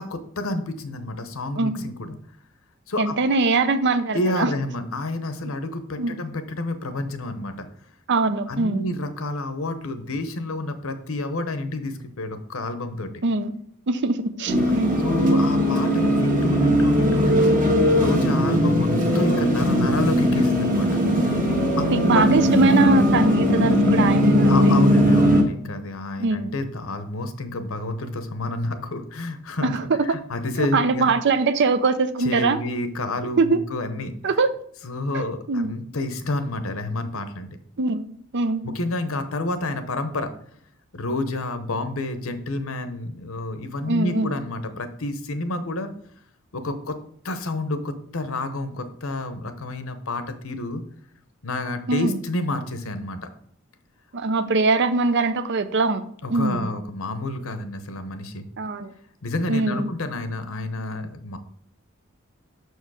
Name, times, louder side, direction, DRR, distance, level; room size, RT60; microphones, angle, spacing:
voice 1, 0.0-2.2 2.9-3.1 4.1-7.7 8.5-13.1 14.4-17.5 17.9-18.9 19.1-20.9 21.8-21.9 22.1-22.2 24.4-29.7 30.0-31.1 32.2-34.1 34.8-37.5 38.6-40.3 40.9-45.9 46.5-47.0 47.2-50.8 51.4-53.2 56.2-58.5 59.2-61.4, left 2 dB, 75° left, 9 dB, 0.9 m, -29 dB
voice 2, 3.0-4.5 5.4-5.5 6.0-6.2 8.1-8.8 13.2-13.5 13.9-15.0 21.9-24.7 26.2-26.5 29.6-30.2 30.6-32.6 33.4-33.6 34.2-34.5 35.1-35.7 37.8-38.1 38.3-38.6 43.9-44.3 51.9-52.2 54.1-56.0 56.3-56.7 58.6-58.9 59.5-59.9, right 3 dB, 55° right, 11 dB, 0.6 m, -22 dB
sound 1, 14.5-25.4, equal, 40° right, 1.4 m, -19 dB
6.6 x 4.6 x 4.8 m, 0.64 s
head